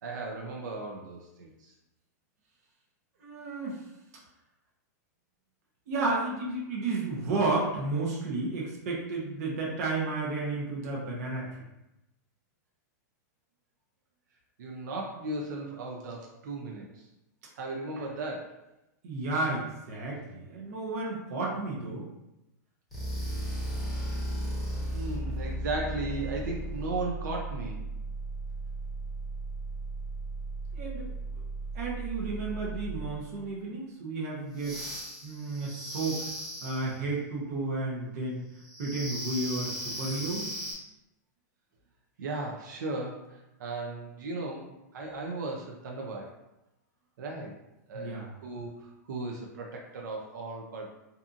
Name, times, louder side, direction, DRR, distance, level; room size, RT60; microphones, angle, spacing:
voice 1, 0.0-1.7 14.6-17.1 17.6-18.6 24.9-27.8 42.2-46.3 47.2-47.5 47.9-50.9, right 2 dB, 85° right, 0 dB, 0.5 m, -36 dB
voice 2, 3.2-3.8 5.9-11.5 19.0-22.0 30.7-31.1 31.7-34.8 35.2-36.2 36.6-38.4 38.8-40.5 47.9-48.3, right 3 dB, 55° right, -3 dB, 0.8 m, -32 dB
sound 1, 22.9-33.3 34.6-37.0 38.6-40.7, right 1 dB, 5° right, 0.9 m, -36 dB
2.6 x 2.4 x 2.4 m, 0.92 s
supercardioid pair, 155°, 10 cm